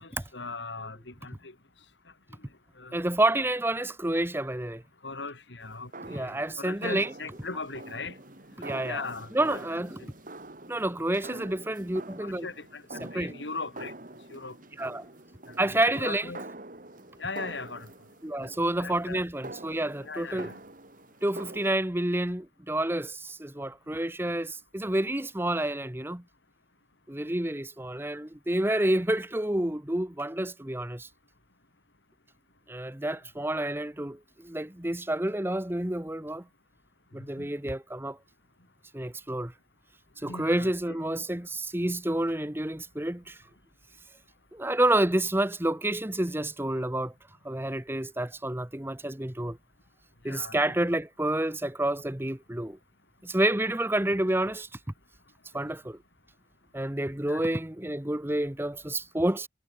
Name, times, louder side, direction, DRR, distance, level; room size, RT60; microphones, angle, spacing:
voice 1, 0.0-1.5 2.8-2.9 5.0-6.3 6.6-8.1 8.9-9.6 10.0-10.1 11.2-11.4 12.2-13.9 14.3-14.6 15.7-16.4 17.2-17.9 18.8-19.2 20.0-20.6 37.4-37.5 40.2-41.0 50.3-50.7 57.3-57.4, left 3 dB, 85° left, 3.5 m, -39 dB
voice 2, 2.9-4.8 6.1-7.1 8.6-9.0 9.3-10.0 10.7-12.5 13.0-13.3 14.8-15.1 15.6-16.3 18.2-20.5 21.2-26.2 27.1-31.1 32.7-36.4 37.1-38.2 38.9-39.5 40.2-43.4 44.5-47.1 47.4-49.6 50.2-52.8 53.2-54.7 55.5-56.0 56.7-59.5, right 1 dB, 15° right, 1.1 m, -29 dB
sound 1, 5.6-21.7, right 2 dB, 50° right, 3.0 m, -45 dB
head